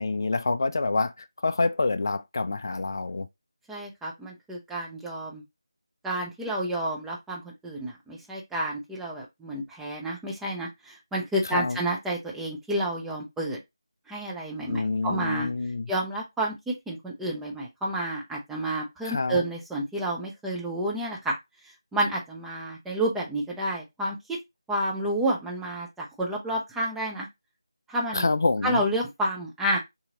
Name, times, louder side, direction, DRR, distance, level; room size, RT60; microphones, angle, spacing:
voice 1, 0.0-3.3 11.5-11.8 14.7-15.9 19.0-19.5 28.1-28.8, left 3 dB, 45° left, 0.3 m, -27 dB
voice 2, 3.7-5.4 6.0-13.6 14.1-15.5 15.9-21.4 21.9-24.4 24.7-27.3 27.9-28.3 28.6-29.8, right 1 dB, 5° right, 0.6 m, -30 dB
2.8 x 2.7 x 3.8 m
figure-of-eight pair, 165°, 3 cm